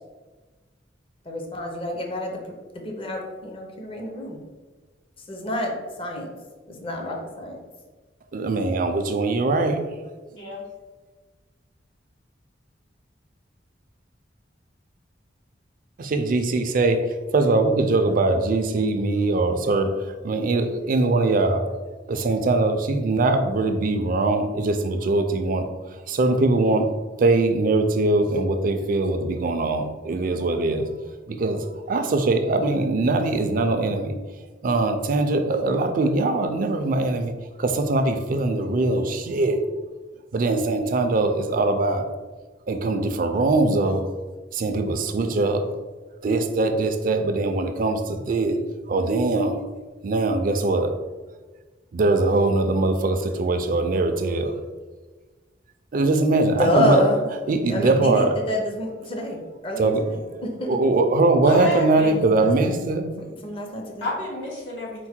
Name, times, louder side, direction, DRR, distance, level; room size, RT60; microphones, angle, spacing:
voice 1, 1.3-2.3 2.8-4.4 5.3-6.3 6.7-7.6 56.3-57.3 57.5-60.7 62.3-62.7 63.2-64.1, left 1 dB, 30° left, 0 dB, 0.6 m, -28 dB
voice 2, 8.3-9.8 16.0-17.0 17.3-21.7 22.1-25.7 26.1-26.9 27.2-30.9 31.3-34.2 34.6-37.3 37.6-39.6 40.3-42.1 42.7-44.1 44.5-45.6 46.2-48.6 48.9-49.6 50.0-50.9 51.9-54.5 55.9-57.0 57.5-58.4 59.8-60.0 60.7-63.1, right 2 dB, 50° right, 7 dB, 0.4 m, -22 dB
voice 3, 10.3-10.6 61.4-62.2 64.0-65.1, left 1 dB, 80° left, -4 dB, 1.4 m, -29 dB
4.5 x 2.1 x 4.3 m, 1.3 s
head